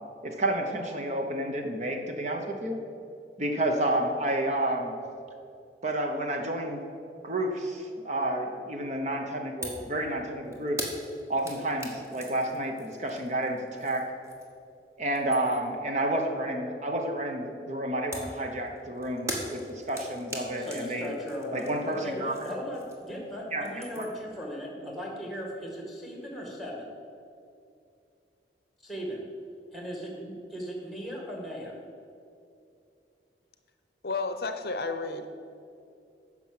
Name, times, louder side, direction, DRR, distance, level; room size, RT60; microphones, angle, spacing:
voice 1, 0.2-2.8 3.4-4.9 5.8-6.8 7.2-10.8 11.3-14.1 15.0-21.1 21.5-22.5 23.5-23.6 24.0-24.1, right 1 dB, 40° right, 3 dB, 0.9 m, -30 dB
sound 1, 9.6-9.9 10.2-14.7 15.0-15.8 18.1-23.2 23.5-24.3, equal, 15° right, 1.3 m, -41 dB
voice 2, 20.6-26.9 28.8-29.2 29.7-31.8, equal, ahead, 0 dB, 1.9 m, -37 dB
voice 3, 34.0-35.3, left 3 dB, 60° left, 8 dB, 0.6 m, -31 dB
9.9 x 6.1 x 7.6 m, 2.6 s
head